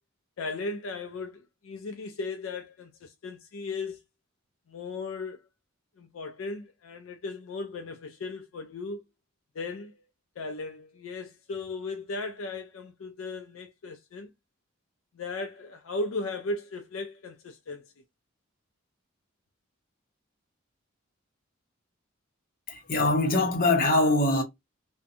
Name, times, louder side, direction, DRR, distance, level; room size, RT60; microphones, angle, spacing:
voice 1, 0.4-4.0 4.7-5.4 6.0-9.0 9.6-9.9 10.4-14.3 15.2-17.8, left 3 dB, 70° left, 0.4 m, -36 dB
voice 2, 22.7-24.4, left 2 dB, 45° left, 0.7 m, -23 dB
2.6 x 2.2 x 2.4 m
head